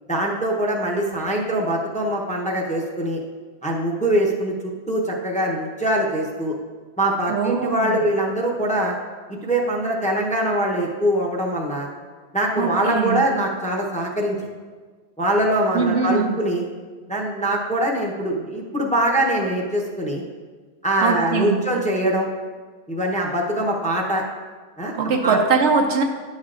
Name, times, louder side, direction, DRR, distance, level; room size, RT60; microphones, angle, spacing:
voice 1, 0.1-3.2 3.6-6.5 7.0-9.0 9.4-11.9 12.3-14.4 15.2-16.6 17.1-20.2 20.8-22.3 22.9-24.2 24.8-24.9 25.2-25.4, right 1 dB, 10° left, -1 dB, 0.7 m, -23 dB
voice 2, 7.3-8.0 12.6-13.2 15.7-16.3 21.0-21.6 24.9-26.0, right 5 dB, 80° right, 2 dB, 1.1 m, -21 dB
10.5 x 6.3 x 2.5 m, 1.5 s
omnidirectional pair, 1.1 m